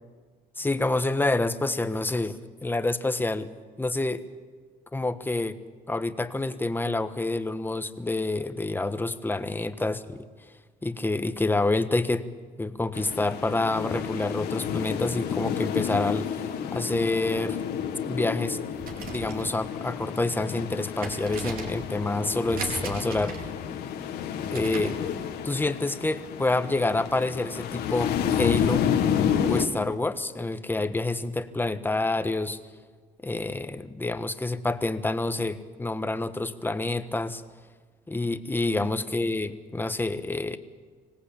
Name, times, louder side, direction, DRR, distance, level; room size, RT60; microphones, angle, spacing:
voice 1, 0.6-3.5 3.8-4.3 4.9-5.6 5.9-10.2 10.8-12.3 12.6-16.4 16.7-17.6 18.1-18.6 19.1-23.4 24.5-25.0 25.4-28.9 29.4-32.6 33.2-37.4 38.1-40.6, left 2 dB, 10° left, 10 dB, 1.3 m, -28 dB
sound 1, 12.9-29.7, left 8 dB, 75° left, 2.0 m, -30 dB
sound 2, 18.7-25.0, right 3 dB, 60° right, 4.5 m, -38 dB
25.5 x 18.0 x 8.7 m, 1.5 s
cardioid pair, 110°, 17 cm